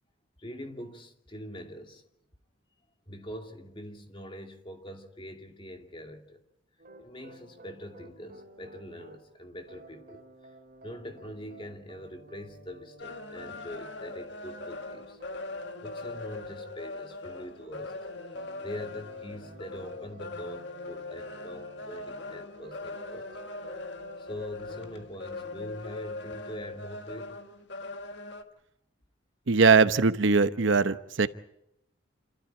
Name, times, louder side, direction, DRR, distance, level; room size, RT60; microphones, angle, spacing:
voice 1, 0.4-2.0 3.1-6.4 7.0-10.5 10.8-15.2 15.8-17.9 18.3-23.3 24.2-27.4, equal, 25° left, 2.5 m, -43 dB
sound 1, 6.8-9.2 9.7-25.0, right 1 dB, 45° right, 3.1 m, -52 dB
sound 2, 13.0-28.4, left 3 dB, 60° left, 1.7 m, -41 dB
voice 2, 29.5-31.3, right 4 dB, 70° right, 0.8 m, -21 dB
27.5 x 13.5 x 9.9 m
head